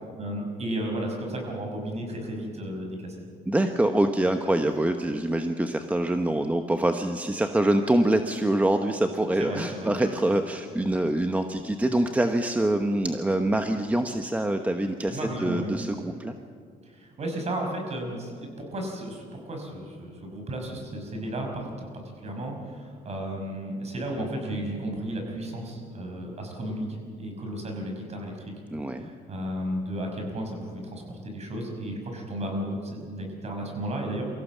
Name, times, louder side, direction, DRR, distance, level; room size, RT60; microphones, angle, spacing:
voice 1, 0.2-3.1 9.4-9.9 15.1-15.7 16.1-16.2 16.8-21.9 22.2-28.3 29.0-34.2, right 1 dB, 40° right, 2 dB, 5.7 m, -33 dB
voice 2, 3.5-16.3 28.7-29.1, right 1 dB, 10° right, 6 dB, 1.0 m, -25 dB
24.0 x 15.5 x 7.3 m, 2.2 s
cardioid pair, 110°, 17 cm